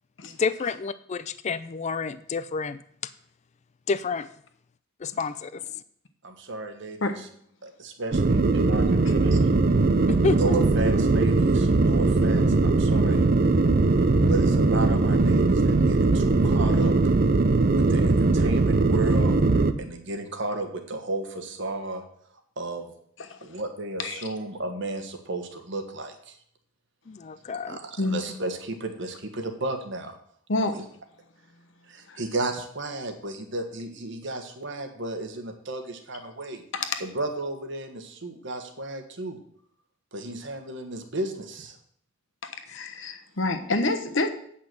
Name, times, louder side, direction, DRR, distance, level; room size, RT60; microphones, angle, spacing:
voice 1, 0.2-2.8 3.9-4.3 5.0-5.6 10.1-10.6 27.1-27.8, left 4 dB, 35° left, 14 dB, 0.4 m, -29 dB
voice 2, 6.2-7.0 7.6-9.5 10.3-13.2 14.3-16.9 17.7-19.3 19.8-22.0 22.6-22.9 23.4-26.4 27.5-30.1 30.6-30.8 31.9-36.6 37.0-39.4 40.1-41.8, right 2 dB, 65° right, 6 dB, 1.5 m, -33 dB
sound 1, 8.1-19.7, right 3 dB, 45° right, 0.6 m, -20 dB
voice 3, 42.5-44.3, left 2 dB, 65° left, 8 dB, 1.1 m, -28 dB
8.5 x 5.7 x 7.6 m, 0.65 s
head